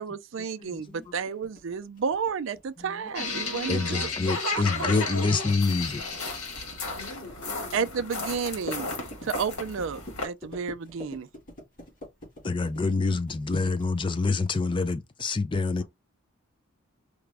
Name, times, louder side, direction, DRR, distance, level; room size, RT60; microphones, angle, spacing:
voice 1, 0.0-4.1 4.5-5.2 7.7-8.9 9.2-11.3, right 6 dB, 60° right, 0.4 m, -32 dB
sound 1, 0.8-14.6, left 1 dB, 40° left, 2.2 m, -46 dB
sound 2, 3.1-10.2, left 3 dB, 90° left, 1.4 m, -33 dB
voice 2, 3.7-6.0 12.4-15.8, left 3 dB, 25° left, 0.3 m, -26 dB
voice 3, 7.0-7.9, left 2 dB, 55° left, 2.3 m, -45 dB
4.9 x 2.2 x 3.4 m
head